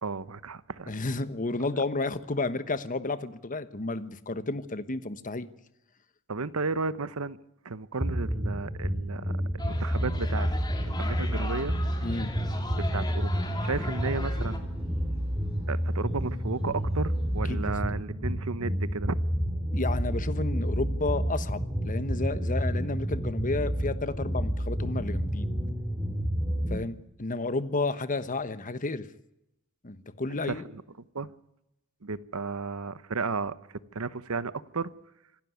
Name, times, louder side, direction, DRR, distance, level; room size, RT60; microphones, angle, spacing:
voice 1, 0.0-1.0 6.3-7.4 7.6-9.4 9.6-10.5 11.0-11.8 12.9-13.3 13.6-14.7 15.7-19.2 30.5-30.8 31.1-31.3 32.0-34.9, right 4 dB, 75° right, 16 dB, 1.0 m, -33 dB
voice 2, 0.9-5.5 12.0-12.3 17.5-17.7 19.7-25.5 26.7-29.1 29.8-30.6, left 3 dB, 40° left, 13 dB, 1.2 m, -32 dB
sound 1, 8.0-26.8, equal, 5° right, 3.0 m, -30 dB
sound 2, 9.6-14.6, left 2 dB, 20° left, 2.9 m, -39 dB
sound 3, 9.6-17.8, equal, 30° right, 7.9 m, -46 dB
26.0 x 12.0 x 9.4 m, 0.86 s
head